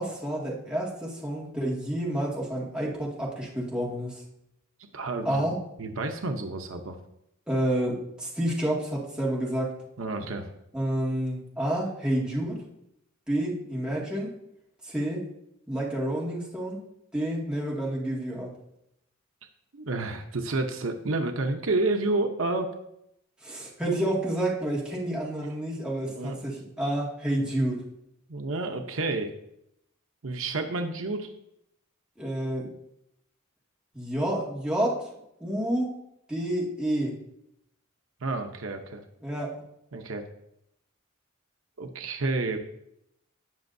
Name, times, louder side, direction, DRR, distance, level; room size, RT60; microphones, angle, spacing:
voice 1, 0.0-4.2 5.2-5.6 7.5-9.7 10.7-12.6 13.3-14.3 14.8-15.3 15.7-16.8 17.1-18.5 23.4-27.8 32.2-32.7 33.9-35.1 35.4-35.9 36.3-37.2 39.2-39.5, right 1 dB, 5° right, -5 dB, 2.1 m, -29 dB
voice 2, 4.8-5.4 5.8-7.0 10.0-10.5 19.7-22.7 26.1-26.4 28.3-29.3 30.2-31.3 38.2-39.0 39.9-40.2 41.8-42.6, right 2 dB, 75° right, 5 dB, 0.8 m, -30 dB
18.0 x 6.1 x 2.7 m, 0.80 s
head